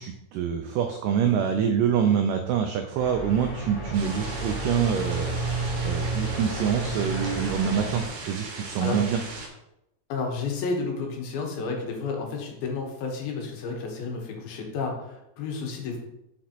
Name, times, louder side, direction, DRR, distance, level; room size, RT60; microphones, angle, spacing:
voice 1, 0.0-5.4 5.8-9.2, right 8 dB, 85° right, 5 dB, 1.8 m, -26 dB
sound 1, 2.9-8.1, right 2 dB, 45° left, 1.1 m, -31 dB
sound 2, 3.9-9.5, right 3 dB, 65° right, 2.5 m, -39 dB
voice 2, 10.1-16.0, left 4 dB, 80° left, 1 dB, 2.9 m, -31 dB
6.2 x 5.9 x 2.9 m, 0.85 s
omnidirectional pair, 4.2 m